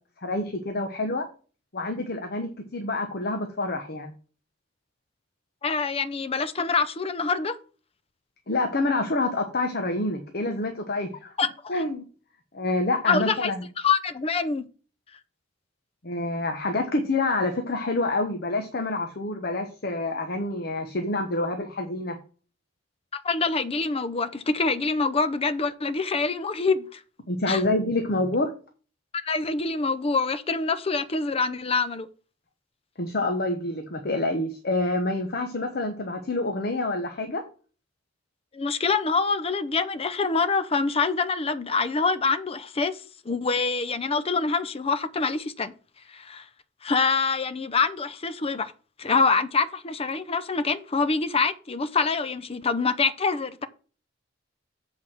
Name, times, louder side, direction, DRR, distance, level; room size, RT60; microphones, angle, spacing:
voice 1, 0.2-1.3 1.7-4.1 8.5-11.3 11.7-12.0 12.5-13.7 16.0-22.2 27.3-28.5 33.0-37.4, left 2 dB, 55° left, 1.0 m, -27 dB
voice 2, 5.6-7.6 11.4-11.7 13.1-13.5 13.8-14.7 23.1-27.0 27.5-27.6 29.2-32.1 38.5-43.0 43.3-45.7 46.1-46.5 46.8-48.7 49.0-53.7, left 4 dB, 30° left, 0.6 m, -25 dB
7.8 x 4.7 x 6.1 m
head